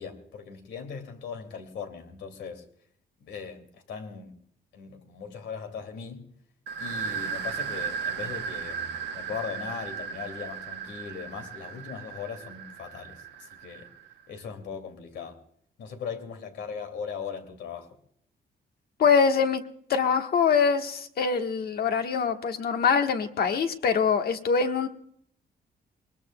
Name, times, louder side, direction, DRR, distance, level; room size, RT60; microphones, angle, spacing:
voice 1, 0.0-2.6 3.2-4.4 4.7-6.3 6.8-13.9 14.3-15.4 15.8-18.0, left 6 dB, 90° left, 2.4 m, -39 dB
sound 1, 6.7-14.1, right 6 dB, 80° right, 1.1 m, -36 dB
voice 2, 19.0-19.6 19.9-24.9, left 6 dB, 60° left, 1.3 m, -24 dB
21.0 x 20.5 x 2.2 m
cardioid pair, 140°, 18 cm